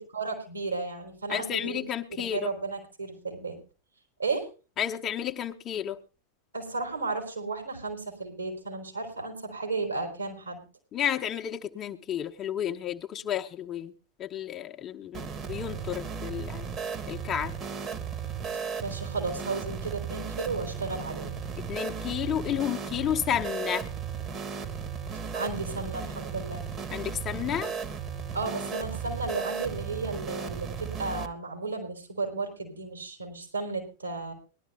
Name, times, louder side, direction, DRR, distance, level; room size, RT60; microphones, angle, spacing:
voice 1, 0.0-1.8 2.2-3.6 4.2-4.5 6.5-10.6 18.8-21.3 25.3-26.6 28.3-34.3, right 3 dB, 80° right, 3 dB, 4.4 m, -34 dB
voice 2, 1.3-2.5 4.8-6.0 10.9-13.9 14.2-16.7 17.1-17.5 21.7-23.9 26.9-27.7, left 10 dB, 30° left, 5 dB, 0.9 m, -31 dB
sound 1, 15.1-31.3, right 6 dB, 30° right, 1.3 m, -35 dB
19.5 x 12.0 x 3.4 m, 0.33 s
figure-of-eight pair, 90°, 0 cm